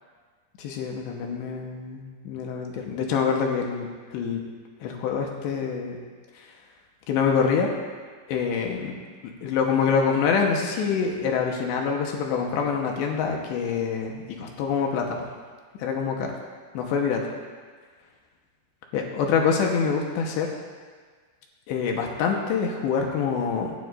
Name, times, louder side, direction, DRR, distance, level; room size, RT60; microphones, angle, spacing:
voice 1, 0.6-4.4 4.8-6.0 7.1-7.7 8.3-8.9 9.4-15.2 15.8-16.3 16.7-17.2 18.9-20.5 21.7-23.8, left 6 dB, 80° left, 1 dB, 3.2 m, -25 dB
24.5 x 9.5 x 2.6 m, 1.6 s
omnidirectional pair, 5.3 m